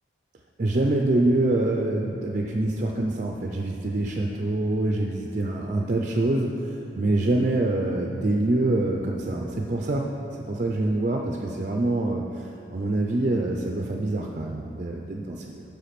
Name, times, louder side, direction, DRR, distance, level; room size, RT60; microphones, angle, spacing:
voice 1, 0.6-10.0 10.5-15.6, right 2 dB, 45° right, 1 dB, 0.5 m, -25 dB
8.3 x 6.6 x 5.9 m, 2.8 s
head